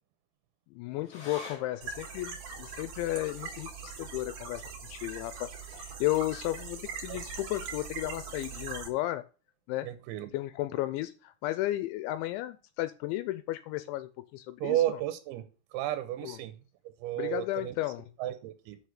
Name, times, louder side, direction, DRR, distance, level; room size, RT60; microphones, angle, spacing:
voice 1, 0.7-9.2 9.7-9.9 10.3-15.0 16.2-16.4 17.2-18.0, left 16 dB, 85° left, 13 dB, 2.8 m, -34 dB
sound 1, 1.0-7.8 8.1-8.2 8.6-9.2 9.8-9.9, left 2 dB, 50° left, 3.0 m, -53 dB
sound 2, 1.8-8.9, right 5 dB, 55° right, 2.8 m, -41 dB
voice 2, 9.8-10.3 14.6-15.4 15.7-16.6 17.0-17.8 18.2-18.8, right 13 dB, 80° right, 10 dB, 3.2 m, -32 dB
6.6 x 6.4 x 6.4 m, 0.34 s
omnidirectional pair, 5.5 m